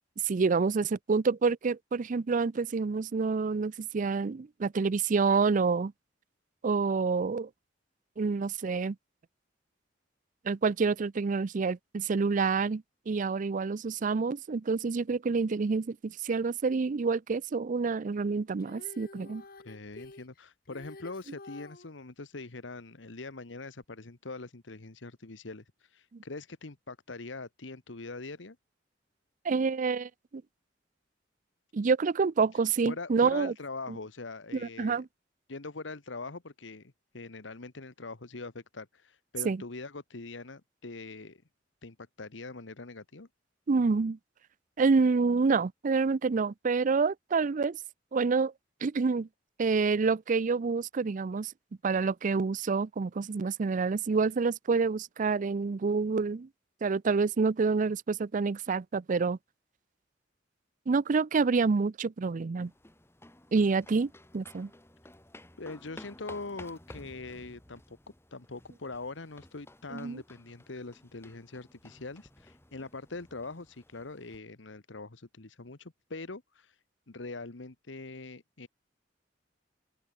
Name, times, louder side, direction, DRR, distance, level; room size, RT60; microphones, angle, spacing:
voice 1, 0.2-5.9 6.6-7.5 8.2-9.0 10.4-19.4 26.1-26.2 29.4-30.4 31.7-33.5 34.5-35.1 39.4-39.6 43.7-44.2 44.8-47.8 48.1-48.5 48.8-49.3 49.6-51.5 51.8-56.5 56.8-59.4 60.9-62.7 63.5-64.7 69.9-70.2, right 4 dB, 45° right, 0.4 m, -28 dB
Female singing, 18.6-21.9 23.8-23.9, left 2 dB, 55° left, 1.7 m, -49 dB
voice 2, 19.6-28.6 32.5-32.6 32.9-35.0 35.5-41.4 41.8-43.3 65.6-68.0 68.3-78.7, left 3 dB, 85° left, 1.4 m, -43 dB
sound 1, 62.6-74.4, left 1 dB, 15° left, 3.1 m, -54 dB
open air
head